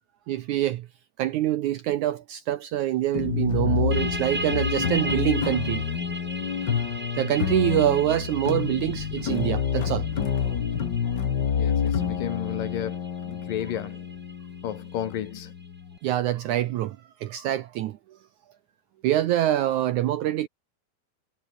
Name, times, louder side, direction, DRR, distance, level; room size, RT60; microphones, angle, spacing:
voice 1, 0.3-0.9 1.2-5.9 7.2-10.1 16.0-18.0 19.0-20.5, right 13 dB, 75° right, 1.8 m, -25 dB
sound 1, 3.1-16.0, left 7 dB, 55° left, 1.2 m, -28 dB
voice 2, 3.5-3.8 11.6-14.1 14.6-15.5, left 10 dB, 70° left, 3.3 m, -33 dB
sound 2, 3.9-15.3, right 1 dB, 15° right, 5.5 m, -37 dB
omnidirectional pair, 4.3 m